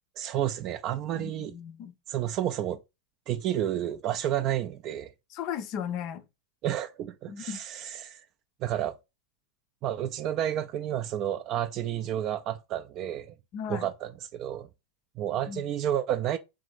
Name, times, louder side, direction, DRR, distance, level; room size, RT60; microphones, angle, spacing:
voice 1, 0.2-1.5 2.1-2.8 3.3-5.1 6.6-8.2 8.6-9.0 9.8-13.3 13.7-14.7 15.2-16.4, right 11 dB, 35° right, 0.3 m, -30 dB
voice 2, 1.2-1.9 5.3-6.2 7.3-7.6 13.5-13.9 15.5-15.6, left 8 dB, 40° left, 0.4 m, -36 dB
3.3 x 3.2 x 3.3 m
figure-of-eight pair, 90°, 0 cm